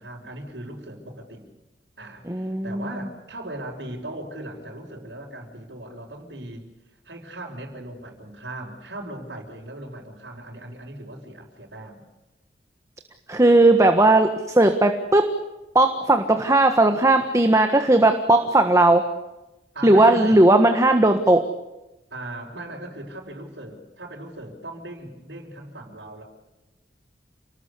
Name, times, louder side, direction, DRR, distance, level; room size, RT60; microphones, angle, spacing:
voice 1, 0.0-1.4 2.0-6.7 7.0-12.0 19.7-20.4 22.1-26.2, right 1 dB, 90° right, -6 dB, 5.3 m, -38 dB
voice 2, 2.3-2.9 13.3-15.3 15.7-19.1 19.8-21.5, right 2 dB, 20° right, 6 dB, 1.5 m, -17 dB
29.0 x 20.0 x 8.4 m, 1.0 s
head